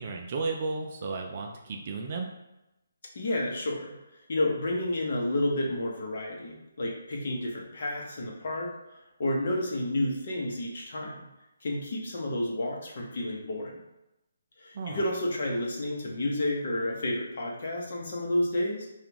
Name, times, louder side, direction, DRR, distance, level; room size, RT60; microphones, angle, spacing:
voice 1, 0.0-2.3 14.7-15.0, right 3 dB, 30° right, 2 dB, 0.4 m, -33 dB
voice 2, 3.1-3.9 4.3-8.7 9.2-11.2 11.6-13.7 14.6-18.9, left 1 dB, 40° left, -1 dB, 0.9 m, -30 dB
5.2 x 2.4 x 2.9 m, 0.93 s
hypercardioid pair, 175°, 0 cm